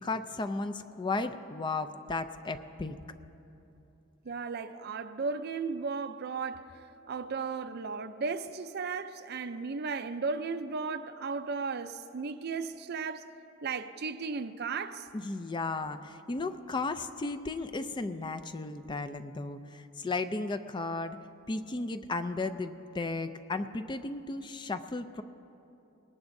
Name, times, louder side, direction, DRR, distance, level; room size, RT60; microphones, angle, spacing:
voice 1, 0.0-3.0 15.1-21.2 21.5-25.2, left 3 dB, 20° left, 0.4 m, -35 dB
voice 2, 4.2-6.6 7.1-13.3 13.6-15.1, right 4 dB, 50° right, 0.5 m, -35 dB
21.0 x 19.0 x 2.7 m
head